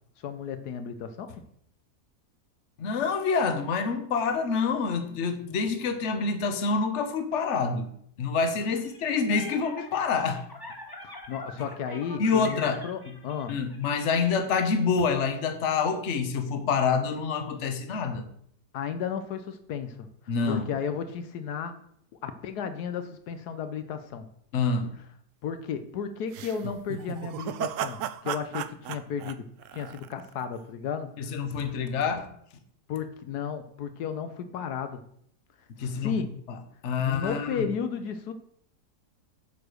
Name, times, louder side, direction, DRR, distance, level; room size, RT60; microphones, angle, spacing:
voice 1, 0.2-1.3 11.0-13.6 18.7-20.1 20.5-21.8 22.2-24.3 25.4-29.5 29.7-31.3 32.9-35.0 35.8-36.3 37.0-38.3, left 7 dB, 80° left, 9 dB, 1.3 m, -34 dB
voice 2, 2.8-7.9 8.2-10.4 12.2-12.8 13.1-13.2 13.5-18.2 20.3-20.7 24.5-24.9 31.2-32.3 35.8-36.2 36.5-36.6 36.8-37.7, left 5 dB, 50° left, 8 dB, 1.2 m, -27 dB
sound 1, 8.8-14.6, left 1 dB, 15° left, 1.5 m, -45 dB
sound 2, 26.3-30.4, right 10 dB, 70° right, 0.8 m, -35 dB
8.5 x 4.9 x 6.5 m, 0.67 s
omnidirectional pair, 1.7 m